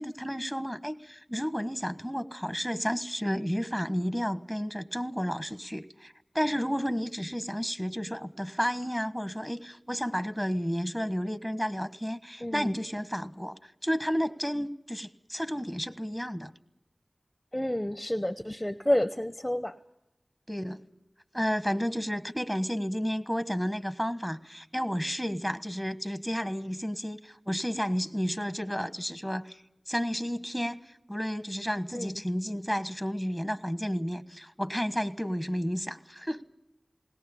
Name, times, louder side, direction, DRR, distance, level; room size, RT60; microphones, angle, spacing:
voice 1, 0.0-16.5 20.5-20.8 21.3-29.6 29.9-30.8 31.1-36.4, equal, 5° right, 12 dB, 1.4 m, -32 dB
voice 2, 12.4-12.7 17.5-19.7 31.9-32.1, left 1 dB, 15° left, 12 dB, 0.8 m, -29 dB
20.5 x 18.5 x 8.4 m, 0.86 s
wide cardioid pair, 50°, 0 cm